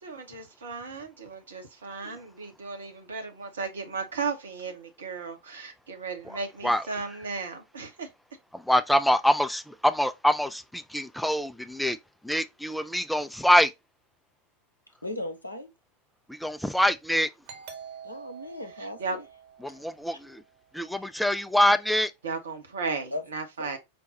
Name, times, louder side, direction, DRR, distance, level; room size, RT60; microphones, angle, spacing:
voice 1, 0.0-8.1 18.8-19.2 22.2-23.8, right 4 dB, 65° right, 1.0 m, -35 dB
voice 2, 8.5-12.0 12.2-13.7 16.3-17.3 19.6-20.4 20.7-22.1, equal, ahead, 0.4 m, -25 dB
voice 3, 15.0-15.7 18.0-19.2 23.1-23.2 23.6-23.8, left 1 dB, 85° left, 0.8 m, -36 dB
Doorbell, 17.5-20.8, right 7 dB, 50° right, 1.1 m, -47 dB
5.2 x 2.3 x 4.0 m
figure-of-eight pair, 90°, 0 cm